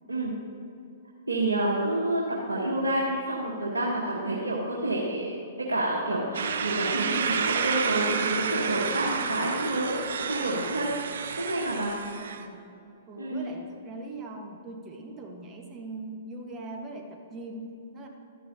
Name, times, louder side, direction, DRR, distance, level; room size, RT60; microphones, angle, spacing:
voice 1, 1.3-2.2 2.5-5.4 5.7-10.0 10.3-11.0 11.4-11.9 13.2-13.5, right 1 dB, 80° right, -4 dB, 1.3 m, -28 dB
sound 1, 6.3-12.4, right 6 dB, 60° right, 0.6 m, -30 dB
voice 2, 12.1-12.6 13.1-18.1, right 2 dB, 25° right, 2 dB, 1.4 m, -41 dB
12.5 x 10.0 x 2.8 m, 2.7 s
figure-of-eight pair, 115°, 0 cm